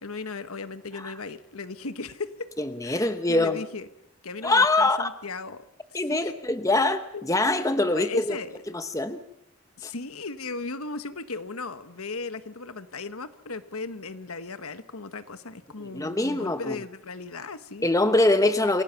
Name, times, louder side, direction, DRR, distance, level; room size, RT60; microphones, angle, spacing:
voice 1, 0.0-2.5 2.8-3.9 4.2-5.6 5.9-6.4 7.1-7.2 7.9-8.6 9.8-17.9, left 3 dB, 85° left, 11 dB, 1.3 m, -36 dB
voice 2, 2.6-3.6 4.4-5.1 5.9-8.4 8.7-9.2 9.8-9.9 15.9-16.8 17.8-18.8, left 2 dB, 15° left, 10 dB, 0.9 m, -23 dB
27.5 x 17.5 x 5.9 m, 0.79 s
head